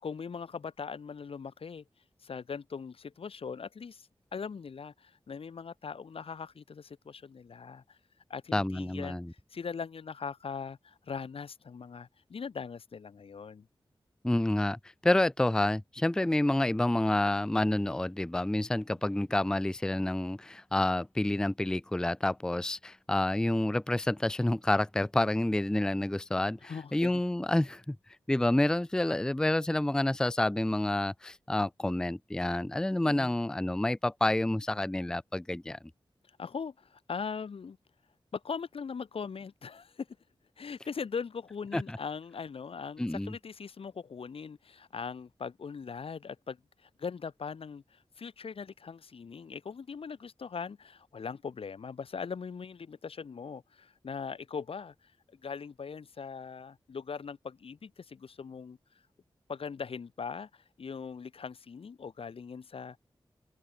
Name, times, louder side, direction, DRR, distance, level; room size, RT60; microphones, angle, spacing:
voice 1, 0.0-1.8 2.2-8.0 8.3-9.2 9.5-13.7 26.6-27.1 33.0-33.4 36.4-37.8 38.3-40.1 40.6-46.6 46.8-58.8 59.5-63.0, left 5 dB, 85° left, 1.5 m, -40 dB
voice 2, 8.5-9.3 14.2-28.0 28.3-35.8 41.7-42.0 43.0-43.3, left 1 dB, 5° left, 0.4 m, -29 dB
wide cardioid pair, 120°, 9 cm